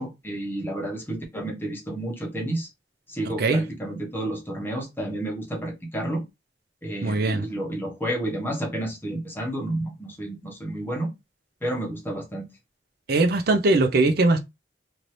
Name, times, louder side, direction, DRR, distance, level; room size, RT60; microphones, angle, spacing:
voice 1, 0.0-2.7 3.1-6.2 6.8-11.1 11.6-12.4, right 1 dB, 10° left, 1.0 m, -30 dB
voice 2, 7.0-7.5 13.1-14.4, right 2 dB, 60° right, 0.6 m, -20 dB
2.8 x 2.6 x 3.2 m
head